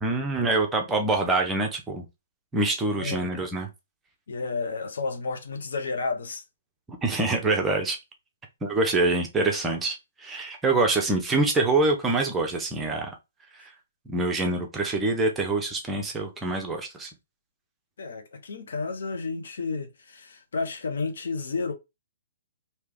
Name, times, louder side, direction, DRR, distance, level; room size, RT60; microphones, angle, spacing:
voice 1, 0.0-2.0 2.5-3.7 7.0-8.0 8.6-13.1 13.6-13.7 14.1-17.1, right 2 dB, 10° right, 0.8 m, -25 dB
voice 2, 2.9-3.3 4.3-6.4 18.0-21.7, left 4 dB, 60° left, 0.8 m, -31 dB
3.3 x 2.9 x 3.3 m
figure-of-eight pair, 125°, 0 cm